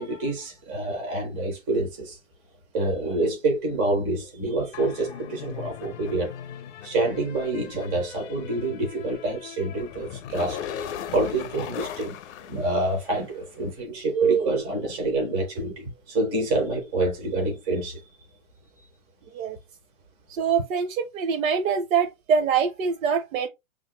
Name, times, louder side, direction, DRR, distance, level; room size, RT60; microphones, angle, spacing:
voice 1, 0.0-2.2 2.7-6.3 6.8-12.1 12.5-18.0, right 2 dB, 10° right, 0.3 m, -27 dB
sound 1, 4.7-13.4, left 9 dB, 55° left, 0.6 m, -39 dB
voice 2, 20.3-23.5, right 6 dB, 70° right, 0.7 m, -24 dB
5.8 x 2.5 x 2.9 m
hypercardioid pair, 145°, 41 cm